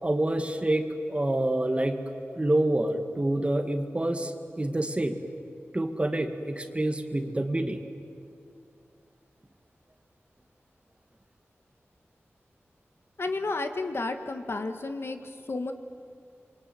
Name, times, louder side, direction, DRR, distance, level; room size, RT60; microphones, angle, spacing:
voice 1, 0.0-2.0 2.3-5.2 5.7-7.8, right 1 dB, 25° right, 6 dB, 1.9 m, -27 dB
voice 2, 13.2-15.7, left 3 dB, 60° left, 6 dB, 1.8 m, -32 dB
27.0 x 23.5 x 9.4 m, 2.4 s
wide cardioid pair, 75°, 5 cm